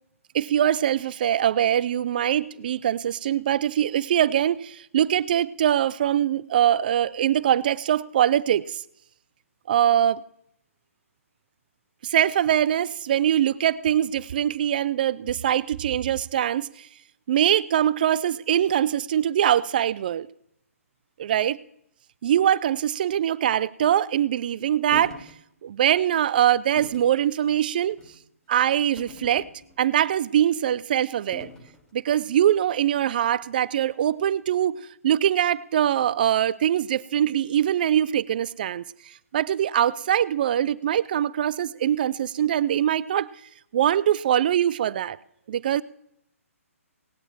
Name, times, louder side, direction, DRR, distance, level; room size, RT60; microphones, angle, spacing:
voice 1, 0.3-8.8 9.7-10.2 12.0-16.9 17.3-20.3 21.2-21.6 22.2-25.2 25.6-28.0 28.5-29.5 29.8-31.5 31.9-34.8 35.0-38.8 39.3-43.3 43.7-45.2 45.5-45.8, right 10 dB, 35° right, 0.4 m, -23 dB
sound 1, 24.9-25.3 25.8-26.0 26.8-27.1 27.9-28.2 29.0-29.9 31.3-31.8, left 4 dB, 10° left, 1.3 m, -43 dB
18.0 x 9.1 x 4.3 m
figure-of-eight pair, 130°, 8 cm